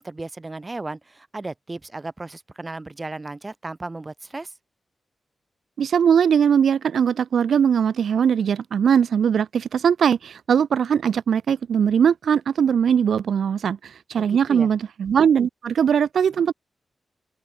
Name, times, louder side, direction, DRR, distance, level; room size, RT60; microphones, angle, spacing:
voice 1, 0.0-4.5 14.2-14.7, right 2 dB, 20° right, 3.2 m, -35 dB
voice 2, 5.8-16.5, right 7 dB, 85° right, 0.5 m, -20 dB
open air
wide cardioid pair, 130°, 0 cm